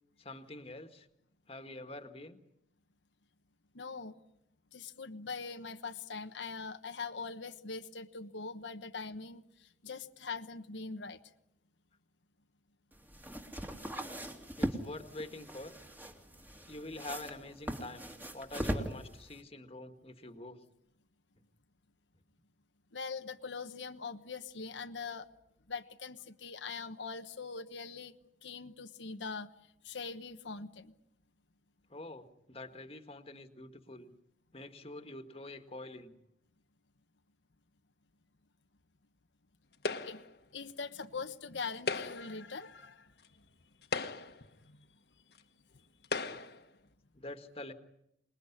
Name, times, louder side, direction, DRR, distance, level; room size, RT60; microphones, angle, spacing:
voice 1, 0.2-1.1 1.5-2.4 9.9-10.0 14.6-15.7 16.7-18.1 18.3-20.6 31.9-34.1 34.5-36.1 46.3-46.4 47.1-47.7, left 2 dB, 30° left, 8 dB, 1.7 m, -46 dB
voice 2, 3.7-4.1 4.7-11.2 22.9-25.3 25.7-28.1 28.4-29.5 29.8-30.9 40.0-40.2 40.5-43.1 44.6-44.8, left 4 dB, 90° left, 7 dB, 1.2 m, -42 dB
sound 1, 12.9-19.4, equal, 10° right, 2.3 m, -40 dB
sound 2, 39.8-40.4 41.7-42.4 43.2-43.3 43.8-44.5 45.4-45.5 46.0-46.6, left 4 dB, 65° left, 1.4 m, -37 dB
26.5 x 21.0 x 9.9 m, 0.81 s
head